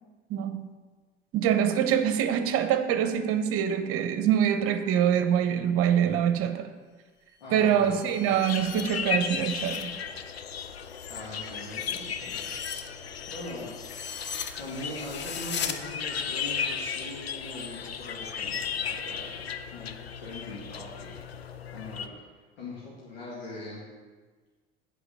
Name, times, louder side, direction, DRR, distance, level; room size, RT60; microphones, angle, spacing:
voice 1, 0.3-0.7 1.3-6.7 7.5-9.9, right 9 dB, 50° right, 9 dB, 0.9 m, -25 dB
voice 2, 7.4-8.3 11.1-12.5 13.0-13.7 14.6-19.9 20.2-21.2 21.7-22.1 22.6-23.8, left 1 dB, 70° left, -6 dB, 1.9 m, -41 dB
sound 1, 7.5-9.9 10.3-15.8, left 7 dB, 35° left, 0.8 m, -40 dB
sound 2, 8.4-22.1, left 7 dB, 90° left, 0.5 m, -35 dB
8.1 x 4.7 x 7.2 m, 1.4 s
figure-of-eight pair, 65°, 30 cm